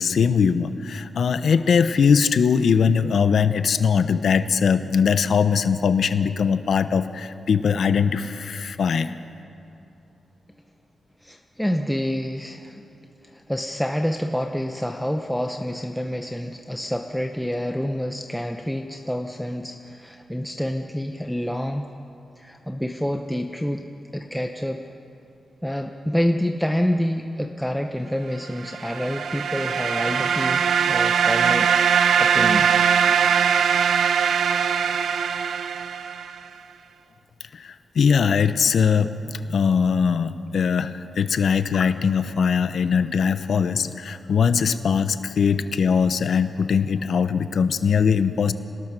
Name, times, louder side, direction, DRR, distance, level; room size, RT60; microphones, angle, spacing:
voice 1, 0.0-9.1 37.5-39.1 39.5-48.5, left 6 dB, 60° left, 11 dB, 0.8 m, -21 dB
voice 2, 11.2-12.8 13.2-21.9 22.4-23.8 24.1-24.9 25.6-31.7 32.2-32.7, equal, ahead, 3 dB, 0.7 m, -27 dB
sound 1, 28.6-36.4, right 7 dB, 75° right, 0.7 m, -21 dB
27.0 x 19.0 x 6.2 m, 2.8 s
wide cardioid pair, 165°, 0 cm